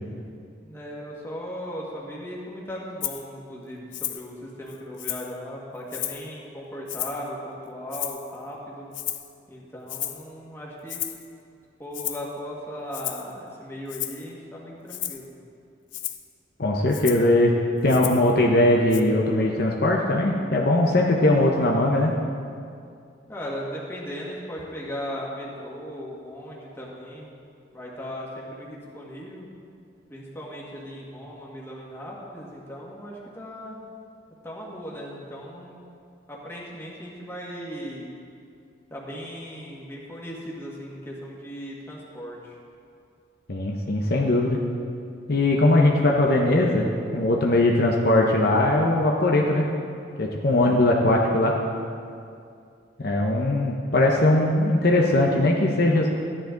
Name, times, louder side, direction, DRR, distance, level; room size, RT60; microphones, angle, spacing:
voice 1, 0.6-8.9 9.5-11.0 11.8-15.3 23.3-27.4 27.7-29.5 30.1-33.8 34.4-35.8 36.3-38.1 38.9-42.5, equal, 15° left, -4 dB, 1.9 m, -37 dB
Rattle (instrument), 3.0-3.2 3.9-4.3 4.7-5.4 5.9-6.3 6.9-7.3 7.9-8.4 8.9-9.3 9.9-10.3 10.9-11.3 11.9-12.3 12.9-13.3 13.9-14.2 14.9-15.3 15.9-16.2 16.9-17.3 17.9-18.3 18.9-19.0, left 13 dB, 80° left, 0.6 m, -33 dB
voice 2, 16.6-17.5 17.8-22.1 43.5-44.6 45.3-49.7 50.2-51.5 53.0-56.1, left 1 dB, 55° left, -1 dB, 0.9 m, -20 dB
13.5 x 10.0 x 3.9 m, 2.4 s
head